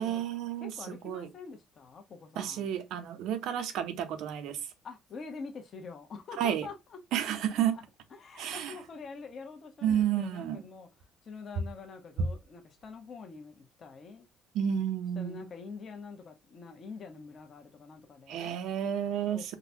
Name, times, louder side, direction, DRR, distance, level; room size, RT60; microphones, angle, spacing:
voice 1, 0.0-1.3 2.4-4.6 6.4-6.7 7.1-7.8 8.4-8.7 9.8-10.6 14.5-15.5 18.3-19.6, right 9 dB, 75° right, 0.6 m, -31 dB
voice 2, 0.6-2.7 4.8-7.0 7.3-7.6 8.1-14.3 15.2-18.6 19.3-19.6, left 4 dB, 40° left, 0.8 m, -46 dB
3.8 x 2.2 x 2.7 m
cardioid pair, 115°, 0 cm